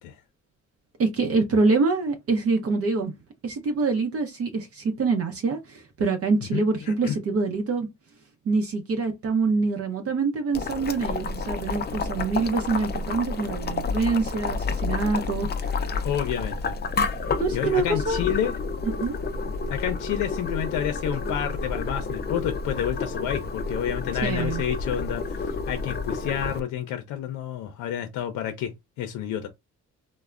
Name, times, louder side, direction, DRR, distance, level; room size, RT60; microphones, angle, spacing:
voice 1, 1.0-3.1 3.4-7.9 8.5-15.8 17.4-18.2 18.9-19.2 19.5-19.6 24.2-24.6, right 4 dB, 50° right, 0.6 m, -25 dB
voice 2, 6.5-7.2 16.0-16.8 17.0-17.2 17.5-18.6 19.7-28.7 29.0-29.5, left 10 dB, 85° left, 0.5 m, -29 dB
Boiling, 10.5-26.6, left 4 dB, 35° left, 0.4 m, -30 dB
3.2 x 2.0 x 2.3 m
cardioid pair, 90°, 30 cm